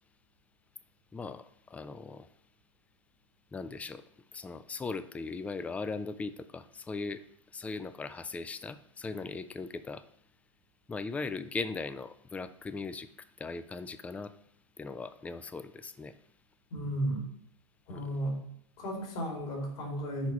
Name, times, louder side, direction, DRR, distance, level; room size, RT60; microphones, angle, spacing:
voice 1, 1.1-2.3 3.5-4.0 4.3-7.2 7.5-10.0 10.9-14.3 14.8-16.2 17.9-18.2, left 4 dB, 10° left, 13 dB, 0.4 m, -39 dB
voice 2, 16.7-17.2 17.9-18.4 18.8-20.3, right 1 dB, 50° left, 0 dB, 2.7 m, -34 dB
6.3 x 4.6 x 5.4 m, 0.68 s
figure-of-eight pair, 95°, 15 cm